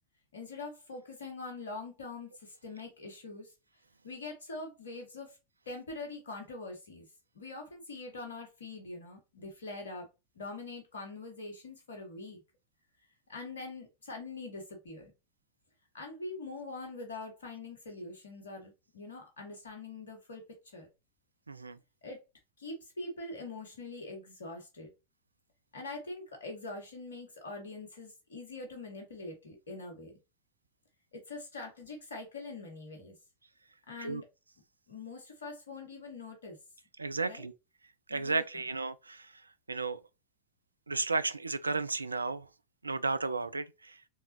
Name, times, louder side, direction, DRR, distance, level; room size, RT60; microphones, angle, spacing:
voice 1, 0.3-3.5 4.0-5.4 5.7-7.1 7.4-10.1 10.4-12.4 13.3-15.1 15.9-20.4 20.7-20.9 22.0-22.2 22.6-24.9 25.7-30.1 31.1-33.2 33.9-34.3 34.9-36.6 37.2-37.5 38.1-38.6, left 3 dB, 65° left, 1.7 m, -43 dB
voice 2, 21.5-21.8 34.0-34.2 37.0-37.5 38.1-39.3 39.7-40.0 40.9-42.5 42.8-44.0, right 3 dB, 80° right, 0.3 m, -33 dB
4.6 x 3.5 x 3.0 m
figure-of-eight pair, 90°, 0 cm